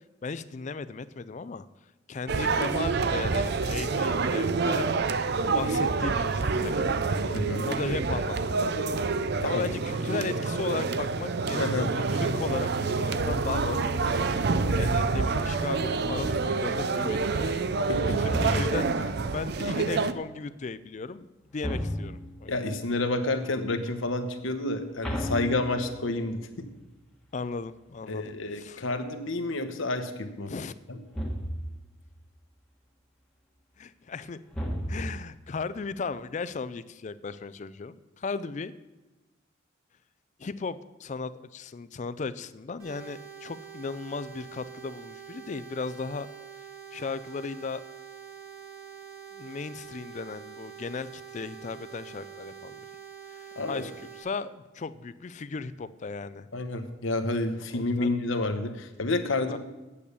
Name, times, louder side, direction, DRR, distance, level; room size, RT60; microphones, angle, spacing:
voice 1, 0.2-1.7 2.1-4.9 5.4-6.9 7.7-8.7 9.4-17.7 18.1-22.5 27.3-28.9 30.5-30.7 33.8-34.4 34.9-38.7 40.4-46.3 46.9-47.8 49.3-52.9 53.3-56.5 57.7-58.2 59.5-59.6, left 4 dB, 35° left, 15 dB, 0.4 m, -36 dB
sound 1, 2.3-20.1, right 4 dB, 50° right, 0.5 m, -27 dB
voice 2, 7.3-7.7 9.4-9.7 11.6-11.9 17.9-18.3 22.5-26.7 28.1-30.5 30.9-31.0 53.6-53.9 56.5-59.6, left 2 dB, 75° left, 8 dB, 1.0 m, -29 dB
sound 2, 18.3-19.0 21.6-22.4 25.0-26.2 31.1-31.8 34.5-35.3, equal, 5° left, 1.2 m, -33 dB
sound 3, 42.8-54.2, right 7 dB, 90° right, 4.5 m, -45 dB
8.6 x 8.4 x 6.8 m, 1.1 s
head